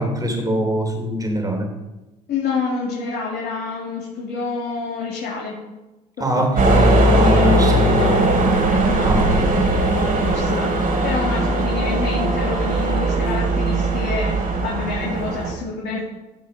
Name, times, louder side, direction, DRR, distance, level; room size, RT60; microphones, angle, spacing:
voice 1, 0.0-1.7 6.2-7.9 9.0-9.5, equal, 15° right, 2 dB, 3.5 m, -22 dB
voice 2, 2.3-5.6 6.3-8.2 8.9-14.4 14.6-16.0, left 4 dB, 55° left, -4 dB, 3.2 m, -28 dB
sound 1, 6.6-15.5, right 1 dB, 40° right, 3.5 m, -19 dB
16.0 x 5.5 x 5.3 m, 1.1 s
hypercardioid pair, 65°, 21 cm